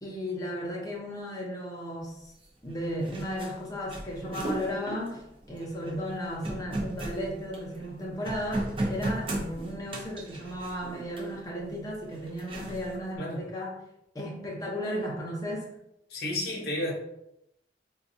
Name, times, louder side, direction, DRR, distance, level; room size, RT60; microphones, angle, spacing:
voice 1, 0.0-2.3 2.6-5.2 5.5-13.8 14.1-15.7, equal, 20° left, -3 dB, 0.7 m, -35 dB
sound 1, 2.4-2.5 2.7-7.9 8.2-11.4 12.1-13.0, right 1 dB, 30° right, 0.6 m, -35 dB
voice 2, 16.1-16.9, left 1 dB, 60° left, 0 dB, 0.8 m, -31 dB
4.0 x 2.3 x 2.6 m, 0.82 s
head